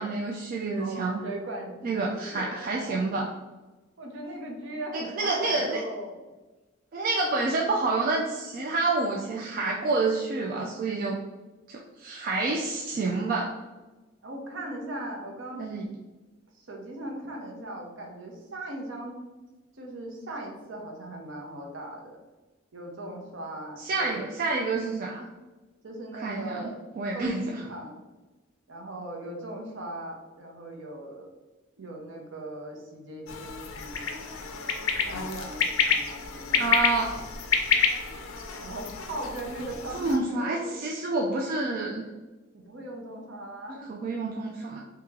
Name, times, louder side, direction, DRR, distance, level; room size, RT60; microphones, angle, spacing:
voice 1, 0.0-1.2 1.8-3.3 4.9-5.8 6.9-11.2 11.7-13.5 15.6-15.8 23.8-25.3 26.1-26.6 27.0-27.6 36.5-37.2 39.9-42.0 43.7-44.8, right 3 dB, 45° right, -1 dB, 0.3 m, -28 dB
voice 2, 0.8-3.0 4.0-6.2 14.2-15.7 16.7-19.2 19.8-22.1 22.7-24.2 25.8-26.8 27.1-27.9 28.7-31.3 31.8-34.1 35.0-36.7 38.6-40.8 42.5-43.8, right 1 dB, 65° right, 1 dB, 0.7 m, -39 dB
sound 1, 33.3-40.2, left 6 dB, 90° left, 0.5 m, -28 dB
2.9 x 2.8 x 3.6 m, 1.2 s
head